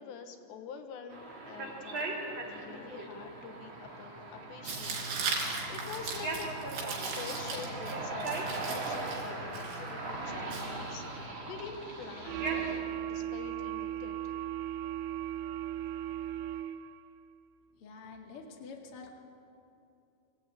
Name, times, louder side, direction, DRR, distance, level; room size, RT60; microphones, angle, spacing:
voice 1, 0.0-5.0 5.2-6.5 7.2-12.7 13.0-14.2, left 6 dB, 85° left, 6 dB, 3.5 m, -46 dB
sound 1, 1.1-12.8, right 2 dB, 35° right, 2.6 m, -39 dB
Tearing, 4.6-11.3, right 4 dB, 70° right, 5.3 m, -38 dB
sound 2, 12.3-17.1, right 12 dB, 85° right, 2.0 m, -37 dB
voice 2, 17.7-19.2, left 4 dB, 45° left, 1 dB, 2.2 m, -47 dB
24.5 x 16.0 x 8.8 m, 2.8 s
omnidirectional pair, 5.0 m